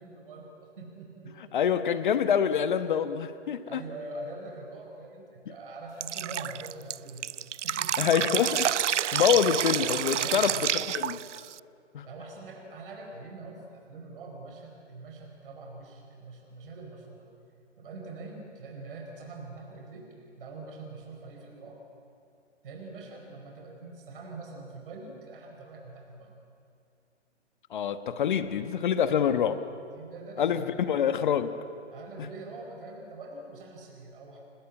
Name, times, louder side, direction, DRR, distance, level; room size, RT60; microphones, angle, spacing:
voice 1, 0.0-1.5 3.7-7.3 7.6-8.3 10.1-10.6 12.0-17.3 17.8-20.1 20.4-21.8 22.6-26.3 29.2-29.5 29.9-30.8 31.9-34.4, right 3 dB, 45° right, 1 dB, 4.8 m, -44 dB
voice 2, 1.5-3.8 5.5-5.6 8.0-8.7 9.1-10.5 10.9-11.2 11.9-12.0 27.7-29.6 30.4-31.5, left 8 dB, 40° left, 11 dB, 1.4 m, -26 dB
Drip, 6.0-11.6, right 10 dB, 75° right, 0.5 m, -29 dB
26.5 x 20.5 x 8.6 m, 2.4 s
hypercardioid pair, 150°, 36 cm